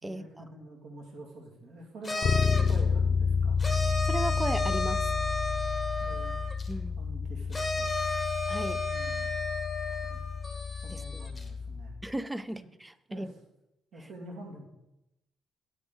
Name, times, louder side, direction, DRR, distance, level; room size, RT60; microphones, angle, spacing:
voice 1, 0.0-3.7 6.0-6.3 7.0-8.0 8.9-9.3 10.0-10.2 10.8-12.0 12.5-12.7 13.1-13.3 13.9-14.7, right 1 dB, 60° right, 1 dB, 2.3 m, -47 dB
sound 1, 2.0-2.8 3.6-6.7 7.5-11.4, left 3 dB, 10° left, 0.9 m, -33 dB
Bass guitar, 2.2-12.0, left 5 dB, 35° left, 0.6 m, -30 dB
voice 2, 3.9-5.1 6.7-7.0 8.5-8.8 10.9-11.2 12.0-13.3, right 1 dB, 5° right, 14 dB, 0.3 m, -35 dB
9.0 x 8.9 x 3.9 m, 0.89 s
cardioid pair, 180°, 0 cm